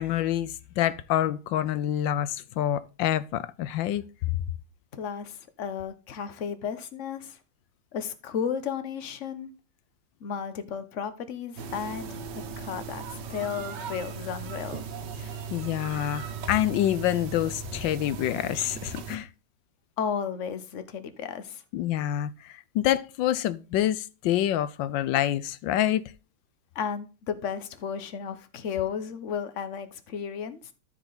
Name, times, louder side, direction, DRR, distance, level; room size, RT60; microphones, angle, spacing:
voice 1, 0.0-4.0 15.5-19.3 21.7-26.0, left 12 dB, 85° left, 1.4 m, -27 dB
voice 2, 4.9-7.4 7.9-9.5 10.2-12.1 12.6-14.8 20.0-21.6 26.7-30.7, left 7 dB, 50° left, 1.2 m, -33 dB
sound 1, 11.6-19.2, right 6 dB, 70° right, 1.6 m, -38 dB
13.5 x 4.8 x 4.0 m
omnidirectional pair, 2.0 m